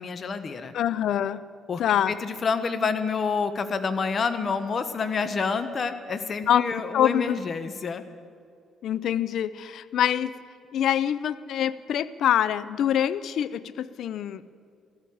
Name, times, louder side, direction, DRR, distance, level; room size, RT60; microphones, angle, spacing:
voice 1, 0.0-0.7 1.7-1.8 2.1-8.0, left 5 dB, 45° left, 10 dB, 1.2 m, -28 dB
voice 2, 0.7-1.4 1.8-2.1 6.5-6.6 6.9-7.4 8.8-10.3 10.7-14.5, left 10 dB, 70° left, 16 dB, 0.5 m, -25 dB
14.5 x 11.5 x 8.6 m, 2.3 s
supercardioid pair, 60°, 0 cm